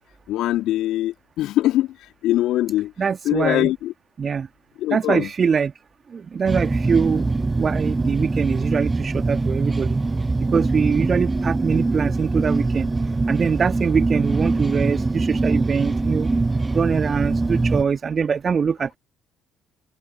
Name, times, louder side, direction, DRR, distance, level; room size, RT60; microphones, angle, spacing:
voice 1, 0.3-2.9 3.2-3.9 4.8-5.3, left 14 dB, 60° left, 2.4 m, -22 dB
voice 2, 3.0-3.7 4.2-4.5 4.9-5.7 6.1-7.3 7.6-10.0 10.5-12.9 13.3-16.3 16.7-19.0, right 6 dB, 40° right, 2.1 m, -23 dB
sound 1, 6.5-17.8, right 3 dB, 20° right, 0.5 m, -23 dB
figure-of-eight pair, 50°, 0 cm